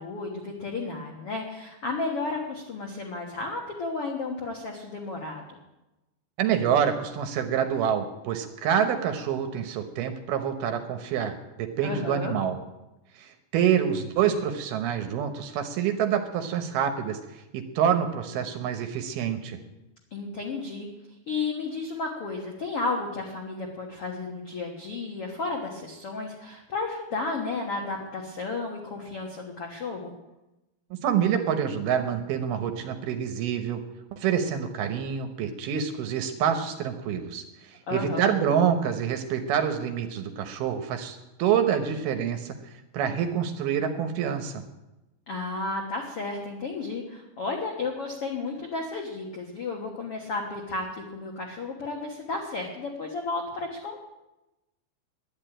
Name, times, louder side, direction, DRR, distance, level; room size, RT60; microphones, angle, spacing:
voice 1, 0.0-5.4 11.8-12.3 20.1-20.9 21.3-30.1 37.9-38.3 45.3-54.0, left 3 dB, 70° left, 1 dB, 1.4 m, -33 dB
voice 2, 6.4-12.6 13.2-19.6 30.9-33.8 34.1-42.5 42.9-44.6, right 8 dB, 75° right, 7 dB, 2.6 m, -27 dB
11.0 x 10.5 x 9.0 m, 0.99 s
omnidirectional pair, 5.0 m